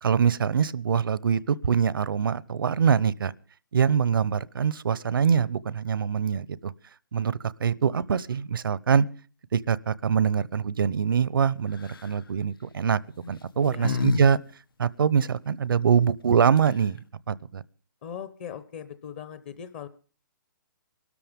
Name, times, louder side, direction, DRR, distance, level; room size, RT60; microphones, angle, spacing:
voice 1, 0.0-3.3 3.7-6.7 7.1-9.1 9.5-13.0 13.3-14.4 14.8-17.0 17.3-17.6, right 7 dB, 80° right, 0.8 m, -24 dB
sound 1, 11.7-12.2 13.1-14.2 14.5-14.6 16.3-16.4 16.6-17.0, left 4 dB, 90° left, 1.8 m, -30 dB
voice 2, 13.6-14.1 18.0-19.9, left 8 dB, 30° left, 0.9 m, -39 dB
24.5 x 13.5 x 3.6 m
hypercardioid pair, 170°, 11 cm